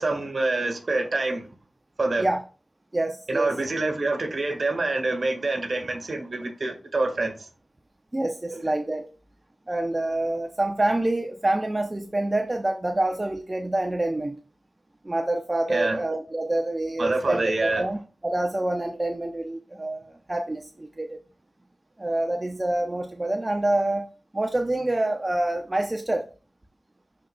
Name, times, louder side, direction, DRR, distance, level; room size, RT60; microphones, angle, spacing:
voice 1, 0.0-1.5 2.0-2.3 3.3-7.5 8.5-8.7 15.7-16.0 17.0-17.9, right 2 dB, 60° right, 1.6 m, -26 dB
voice 2, 2.9-3.6 8.1-9.1 9.7-14.4 15.0-21.2 22.0-24.1 24.3-26.3, right 1 dB, 30° right, 0.6 m, -27 dB
10.5 x 3.9 x 2.2 m
cardioid pair, 55°, 0 cm